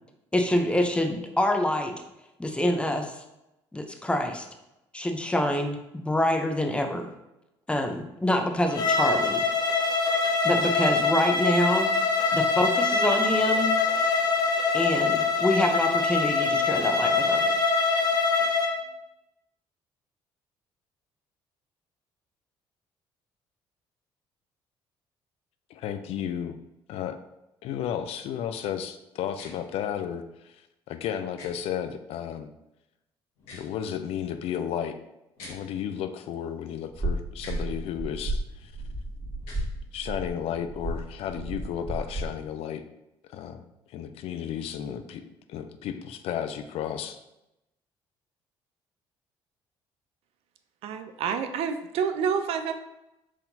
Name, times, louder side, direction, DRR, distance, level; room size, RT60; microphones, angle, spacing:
voice 1, 0.3-1.9 2.4-3.2 3.7-4.5 4.9-7.1 7.7-9.4 10.4-11.9 12.3-13.7 14.7-17.5, left 1 dB, 10° left, 5 dB, 0.6 m, -26 dB
Bowed string instrument, 8.7-18.7, left 4 dB, 40° left, 0.8 m, -24 dB
voice 2, 25.7-26.6 26.9-27.2 27.6-30.6 30.9-32.5 33.5-35.0 35.5-38.7 39.9-42.8 43.3-43.7 43.9-45.2 45.5-47.2, left 9 dB, 70° left, 9 dB, 0.4 m, -33 dB
sound 1, 29.3-29.5 31.4-31.5 33.4-33.7 35.4-35.6 37.4-37.6 39.4-39.7, left 2 dB, 85° left, 1.3 m, -45 dB
sound 2, 36.9-42.3, right 1 dB, 20° right, 1.5 m, -33 dB
voice 3, 50.8-52.7, right 7 dB, 70° right, 8 dB, 0.4 m, -28 dB
4.6 x 3.6 x 2.7 m, 0.91 s
supercardioid pair, 75°, 10 cm